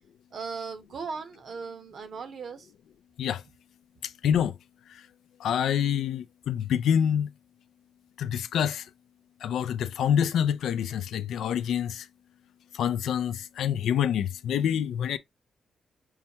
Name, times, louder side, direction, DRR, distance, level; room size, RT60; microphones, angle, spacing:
voice 1, 0.3-2.7, right 5 dB, 65° right, 0.8 m, -37 dB
voice 2, 4.2-4.5 5.4-7.3 8.2-8.8 9.4-12.0 12.8-15.2, left 9 dB, 85° left, 0.3 m, -26 dB
5.5 x 2.2 x 2.8 m
cardioid pair, 65°, 0 cm